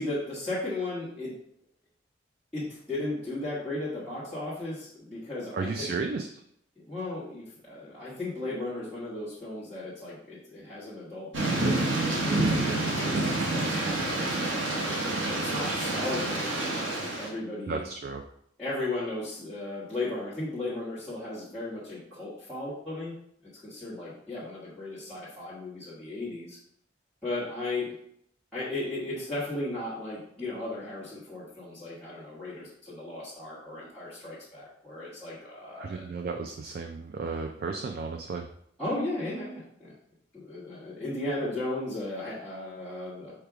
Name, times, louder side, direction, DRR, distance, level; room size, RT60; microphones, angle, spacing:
voice 1, 0.0-1.3 2.5-5.9 6.8-17.8 18.6-23.1 23.5-26.6 27.2-27.9 28.5-36.0 38.8-39.9 40.3-43.3, left 2 dB, 5° left, -13 dB, 1.2 m, -36 dB
voice 2, 5.5-6.3 17.7-18.2 35.8-38.4, right 4 dB, 55° right, 4 dB, 0.3 m, -33 dB
Thunder / Rain, 11.3-17.3, right 2 dB, 90° right, 1.1 m, -28 dB
4.8 x 2.3 x 4.7 m, 0.69 s
head